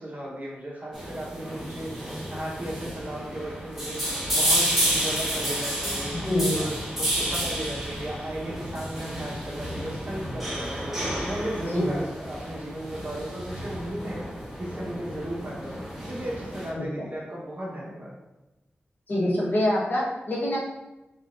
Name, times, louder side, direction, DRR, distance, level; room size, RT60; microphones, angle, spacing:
voice 1, 0.0-1.9 2.3-6.3 6.5-14.2 14.6-18.1, right 1 dB, 45° right, -4 dB, 1.2 m, -36 dB
sound 1, 0.9-16.7, right 1 dB, 5° right, 1.2 m, -31 dB
voice 2, 6.1-6.6 11.7-11.9 16.8-16.9 19.1-20.6, left 1 dB, 60° left, -6 dB, 1.3 m, -25 dB
4.1 x 3.8 x 2.6 m, 1.0 s
wide cardioid pair, 100°, 4 cm